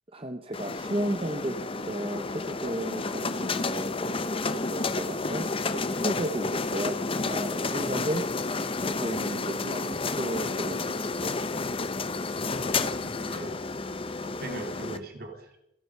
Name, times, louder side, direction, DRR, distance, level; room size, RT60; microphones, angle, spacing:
voice 1, 0.1-8.4 9.0-11.4, right 1 dB, 30° right, 6 dB, 0.9 m, -34 dB
sound 1, 0.5-15.0, left 3 dB, 30° left, 0.8 m, -31 dB
voice 2, 12.6-13.7 14.2-15.6, right 2 dB, 55° right, 3 dB, 3.0 m, -41 dB
27.5 x 11.0 x 4.7 m, 0.82 s
head